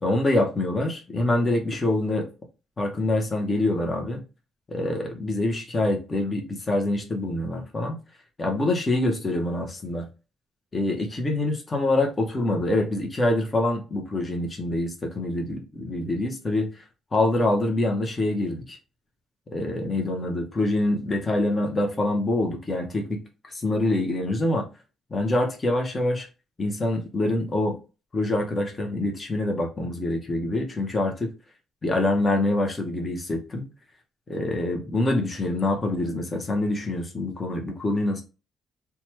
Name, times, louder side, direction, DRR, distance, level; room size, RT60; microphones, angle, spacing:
voice 1, 0.0-2.3 2.8-4.2 4.7-8.0 8.4-10.0 10.7-16.8 17.1-18.8 19.5-23.2 23.5-24.6 25.1-26.3 26.6-27.7 28.1-31.3 31.8-33.6 34.3-38.2, left 2 dB, 35° left, 0.9 m, -25 dB
3.0 x 2.3 x 3.0 m
supercardioid pair, 60°, 0 cm